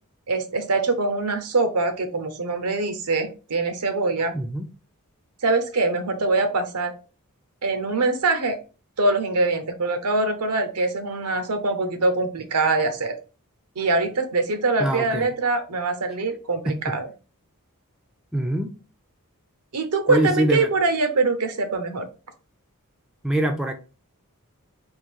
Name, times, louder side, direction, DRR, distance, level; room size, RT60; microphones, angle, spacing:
voice 1, 0.3-4.3 5.4-6.9 7.6-8.6 9.0-13.1 13.8-17.1 19.7-22.1, right 3 dB, 90° right, 8 dB, 0.8 m, -23 dB
voice 2, 4.3-4.7 14.8-15.3 16.7-16.8 18.3-18.7 20.1-20.7 23.2-23.7, right 1 dB, 5° right, 4 dB, 0.4 m, -23 dB
3.7 x 2.6 x 4.5 m, 0.34 s
head